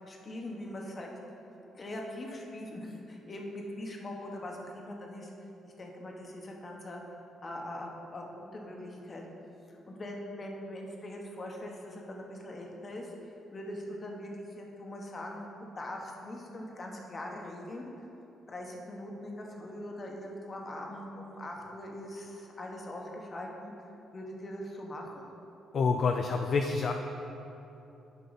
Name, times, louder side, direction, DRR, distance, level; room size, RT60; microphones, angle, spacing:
voice 1, 0.1-1.1 1.7-5.3 5.6-7.0 7.4-9.3 9.7-15.5 15.8-17.9 18.5-23.9 24.1-25.2, left 1 dB, 35° left, 0 dB, 1.2 m, -42 dB
voice 2, 25.7-26.9, left 4 dB, 50° left, 4 dB, 0.4 m, -27 dB
9.6 x 5.6 x 4.1 m, 3.0 s
cardioid pair, 90°, 0 cm